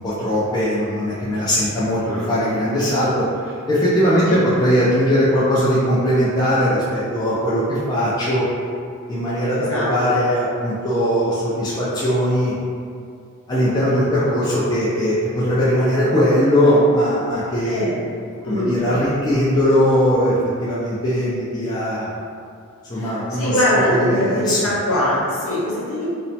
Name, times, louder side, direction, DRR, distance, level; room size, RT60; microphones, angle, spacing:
voice 1, 0.0-8.4 9.1-12.5 13.5-17.8 18.5-22.1 22.9-24.7, equal, 20° left, -9 dB, 0.4 m, -19 dB
voice 2, 9.5-9.9 17.6-17.9 18.4-18.7 22.9-26.1, left 1 dB, 65° left, -8 dB, 0.9 m, -22 dB
3.0 x 2.0 x 2.7 m, 2.3 s
head